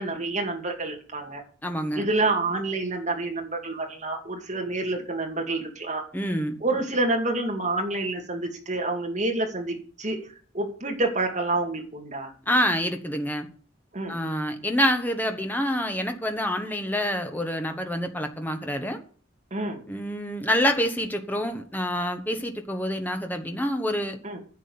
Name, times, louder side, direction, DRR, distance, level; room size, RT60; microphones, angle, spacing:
voice 1, 0.0-1.4 1.9-6.0 6.6-10.3 10.5-12.3 13.9-14.2 19.5-19.8 24.2-24.4, right 2 dB, 35° right, 2.5 m, -28 dB
voice 2, 1.6-2.1 6.1-6.5 12.5-13.5 14.1-19.0 19.9-24.2, equal, 10° left, 1.2 m, -27 dB
10.5 x 7.5 x 7.1 m
head